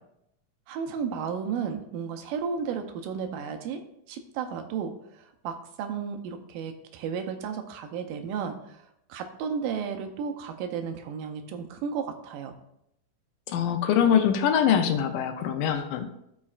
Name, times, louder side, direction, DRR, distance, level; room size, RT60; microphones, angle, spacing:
voice 1, 0.7-12.6, right 6 dB, 85° right, 6 dB, 2.2 m, -33 dB
voice 2, 13.5-16.1, left 8 dB, 80° left, 5 dB, 2.1 m, -23 dB
12.0 x 4.2 x 2.4 m, 0.77 s
omnidirectional pair, 3.8 m